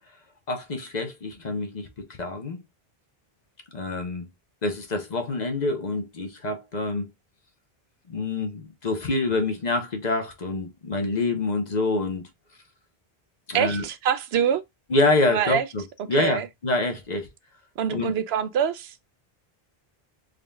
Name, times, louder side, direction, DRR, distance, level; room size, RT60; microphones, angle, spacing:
voice 1, 0.5-1.9 2.2-2.6 3.7-4.3 4.6-7.1 8.1-12.3 13.5-13.8 14.9-17.3 17.9-18.1, left 2 dB, 45° left, 0.9 m, -26 dB
voice 2, 13.5-14.6 15.3-15.7 16.2-16.5 17.8-18.9, right 8 dB, 90° right, 0.9 m, -25 dB
3.9 x 3.7 x 2.2 m
omnidirectional pair, 1.1 m